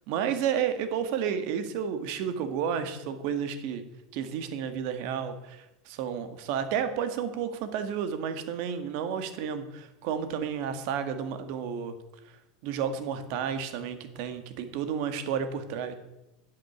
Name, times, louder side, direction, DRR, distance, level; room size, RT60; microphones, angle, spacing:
voice 1, 0.1-3.8 4.1-12.0 12.6-15.9, right 8 dB, 50° right, 9 dB, 1.8 m, -31 dB
11.0 x 7.8 x 8.1 m, 0.92 s
supercardioid pair, 160°, 2 cm